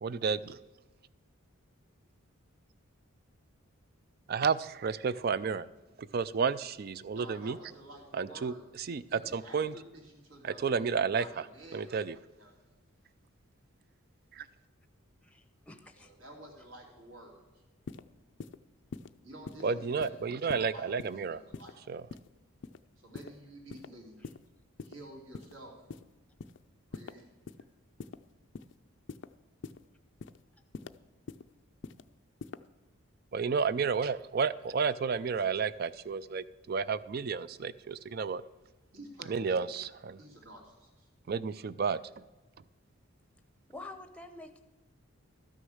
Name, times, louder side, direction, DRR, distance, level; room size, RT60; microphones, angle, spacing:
voice 1, 0.0-0.6 4.3-5.7 6.0-7.6 8.1-9.7 10.4-11.4 11.7-12.2 14.3-14.5 19.6-21.4 21.9-22.0 33.3-38.4 39.3-40.2 41.3-42.0, right 5 dB, 45° right, 17 dB, 0.4 m, -31 dB
voice 2, 7.1-8.7 9.0-12.0 12.4-12.8 16.0-17.6 19.2-21.7 23.0-24.2 24.8-25.8 26.9-27.3 38.9-39.6 40.2-41.1, right 1 dB, 70° right, -1 dB, 3.0 m, -51 dB
voice 3, 15.2-16.1 19.6-19.8 24.2-24.3 30.5-30.6 43.7-44.6, left 2 dB, 5° left, 8 dB, 0.7 m, -48 dB
sound 1, 17.9-18.0 18.4-18.6 18.9-19.1 19.5-19.6 20.0-20.2 20.5-20.7 21.0-21.2 21.5-21.7 22.1-22.3 22.6-22.8 23.2-23.3 23.7-23.9 24.2-24.4 24.8-25.0 25.3-25.5 25.9-26.0 26.4-26.6 26.9-27.1 27.5-27.6 28.0-28.2 28.5-28.7 29.1-29.3 29.6-29.8 30.2-30.4 30.7-30.9 31.3-31.4 31.8-32.0 32.4-32.6, left 4 dB, 55° left, 0.4 m, -43 dB
13.0 x 6.5 x 6.3 m, 1.2 s
head